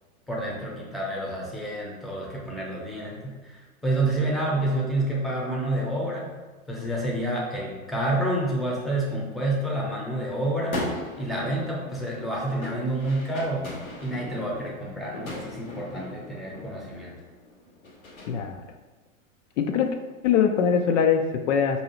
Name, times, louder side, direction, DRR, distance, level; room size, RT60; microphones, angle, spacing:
voice 1, 0.3-6.3 6.7-10.8 11.2-13.7 14.0-17.2, right 1 dB, ahead, -3 dB, 0.6 m, -28 dB
sound 1, 10.4-18.3, left 2 dB, 90° left, 1.0 m, -38 dB
voice 2, 18.3-18.6 19.6-19.9 20.2-21.8, left 7 dB, 60° left, 6 dB, 0.5 m, -22 dB
4.5 x 2.7 x 2.9 m, 1.2 s
hypercardioid pair, 105°, 41 cm